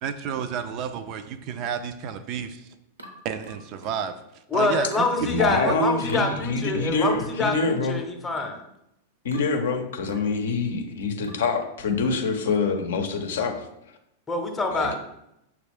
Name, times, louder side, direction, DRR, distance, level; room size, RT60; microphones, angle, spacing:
voice 1, 0.0-2.7 3.2-4.2 4.5-5.1 5.7-5.8, right 8 dB, 40° right, 10 dB, 0.3 m, -31 dB
sound 1, 3.0-4.1 4.9-5.2 6.1-6.3 7.2-7.5 8.4-8.7 9.3-9.6 10.1-10.4 11.2-11.5, equal, 80° right, 0.7 m, -45 dB
voice 2, 4.5-8.6 14.3-14.9, left 3 dB, 15° left, 3 dB, 0.7 m, -26 dB
voice 3, 5.2-8.0 9.2-13.7 14.7-14.9, left 4 dB, 60° left, 5 dB, 0.6 m, -25 dB
6.2 x 2.3 x 3.5 m, 0.81 s
figure-of-eight pair, 90°, 0 cm